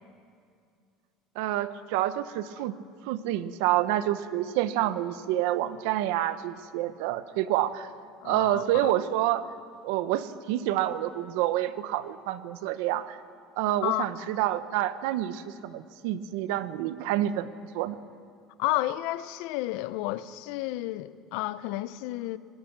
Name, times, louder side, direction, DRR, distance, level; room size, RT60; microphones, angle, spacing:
voice 1, 1.4-2.7 3.0-7.9 8.2-9.4 9.8-13.2 13.6-17.5 17.7-18.0, right 13 dB, 80° right, 0.9 m, -28 dB
voice 2, 8.2-8.9 13.8-14.3 18.6-22.4, left 16 dB, 75° left, 0.7 m, -31 dB
26.5 x 19.0 x 6.1 m
cardioid pair, 160°, 0 cm